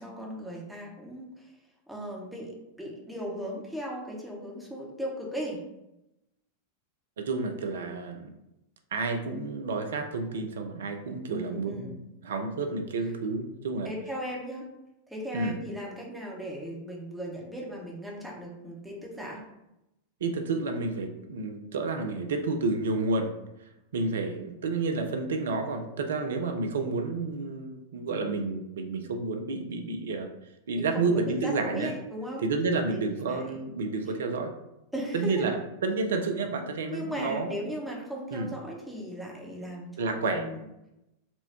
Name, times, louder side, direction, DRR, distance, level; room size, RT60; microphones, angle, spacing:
voice 1, 0.0-1.5 1.9-5.6 11.3-12.0 13.8-14.7 15.1-19.4 30.7-32.4 32.7-33.6 34.9-35.5 36.9-40.7, equal, ahead, -3 dB, 0.9 m, -37 dB
voice 2, 7.2-8.3 8.9-11.9 12.2-13.9 15.3-15.6 20.2-23.3 23.9-30.3 30.7-31.9 32.4-34.5 35.1-37.6 38.3-38.5 40.0-40.5, right 3 dB, 60° right, 5 dB, 0.5 m, -30 dB
4.3 x 2.2 x 2.8 m, 0.90 s
figure-of-eight pair, 90°, 0 cm